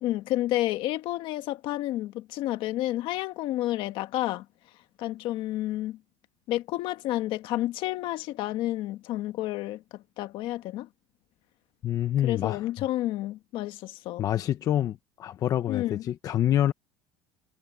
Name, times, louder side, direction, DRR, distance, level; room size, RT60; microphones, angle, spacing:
voice 1, 0.0-4.4 5.0-6.0 6.5-10.9 12.2-14.3 15.7-16.0, left 15 dB, 55° left, 1.6 m, -30 dB
voice 2, 11.8-12.7 14.2-16.7, left 11 dB, 35° left, 0.8 m, -26 dB
cardioid pair, 160°, 10 cm